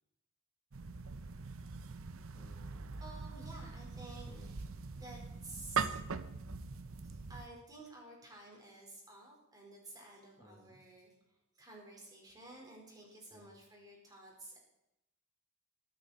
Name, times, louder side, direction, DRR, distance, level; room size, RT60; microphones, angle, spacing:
sound 1, 0.7-7.5, right 5 dB, 65° right, 0.8 m, -42 dB
voice 1, 2.3-3.0 4.2-4.5 10.4-10.8 13.3-13.5, equal, 15° left, -1 dB, 2.1 m, -60 dB
voice 2, 3.0-5.9 7.0-14.6, right 2 dB, 20° right, -1 dB, 4.4 m, -53 dB
22.0 x 9.4 x 4.3 m, 0.88 s
head